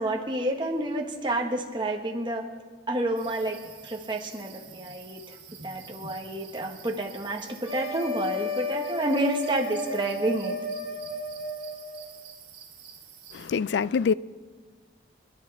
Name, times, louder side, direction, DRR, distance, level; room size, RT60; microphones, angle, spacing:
voice 1, 0.0-2.5 2.9-3.6 3.8-5.4 5.6-10.6, right 1 dB, 25° right, 1.5 m, -29 dB
sound 1, 3.1-13.5, right 7 dB, 60° right, 3.5 m, -48 dB
sound 2, 7.6-12.0, left 1 dB, 90° left, 4.3 m, -33 dB
voice 2, 13.3-14.1, left 6 dB, 75° left, 0.3 m, -25 dB
28.5 x 11.0 x 3.5 m
head